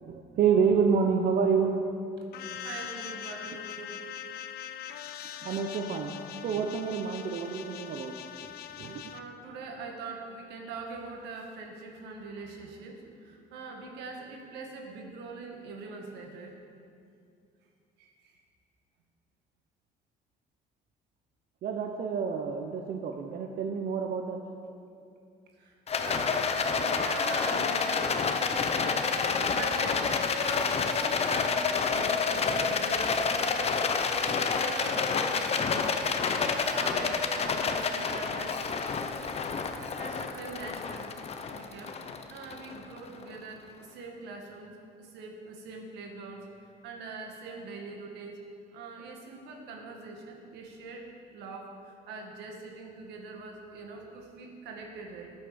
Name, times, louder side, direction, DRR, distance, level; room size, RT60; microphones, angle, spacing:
voice 1, 0.0-1.8 2.4-2.5 5.4-6.1 6.4-8.2 8.4-8.5 8.8-9.1 21.6-24.4, right 6 dB, 60° right, 4 dB, 1.0 m, -28 dB
sound 1, 2.3-9.2, left 10 dB, 65° left, 0.6 m, -42 dB
voice 2, 2.4-4.0 8.8-16.6 18.0-18.4 25.6-29.1 29.4-33.8 34.1-38.6 39.8-41.2 41.5-42.0 42.3-46.5 46.8-48.4 48.7-55.3, right 3 dB, 85° right, 2 dB, 2.2 m, -43 dB
Rattle, 25.9-43.2, left 5 dB, 40° left, 1.0 m, -29 dB
13.5 x 9.5 x 7.0 m, 2.4 s
cardioid pair, 110°, 17 cm